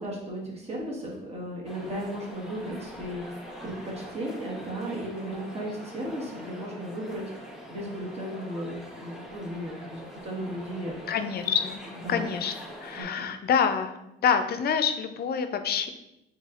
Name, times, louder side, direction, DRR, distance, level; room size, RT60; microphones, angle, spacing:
voice 1, 0.0-7.2 7.7-10.9 12.0-12.3 13.0-13.3, right 1 dB, 30° right, -3 dB, 1.2 m, -35 dB
sound 1, 1.6-13.0, equal, ahead, 0.8 m, -43 dB
voice 2, 11.1-11.8 12.1-12.5 12.8-15.9, left 7 dB, 55° left, 9 dB, 0.4 m, -26 dB
4.0 x 3.1 x 2.4 m, 0.87 s
cardioid pair, 90°, 20 cm